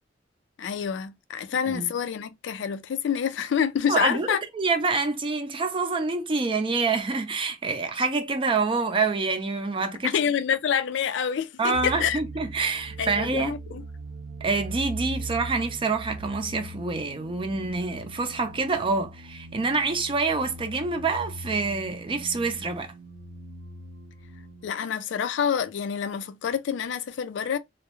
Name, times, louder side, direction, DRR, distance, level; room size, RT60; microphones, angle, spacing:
voice 1, 0.6-4.4 10.0-12.2 13.0-13.8 24.6-27.6, left 7 dB, 75° left, 0.3 m, -27 dB
voice 2, 3.9-4.3 4.5-10.1 11.6-13.5 14.4-22.9, right 4 dB, 30° right, 0.5 m, -26 dB
sound 1, 11.7-24.7, right 2 dB, 85° right, 0.5 m, -40 dB
2.3 x 2.0 x 2.9 m
head